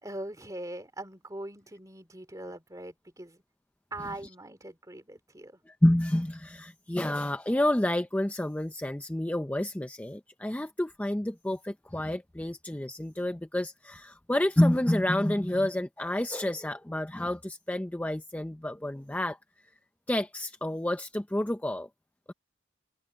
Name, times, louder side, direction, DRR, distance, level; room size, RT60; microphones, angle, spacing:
voice 1, 0.0-3.4 3.9-5.6, right 1 dB, 20° right, 2.7 m, -41 dB
voice 2, 5.7-19.4 20.1-21.9, left 1 dB, 10° left, 0.4 m, -29 dB
head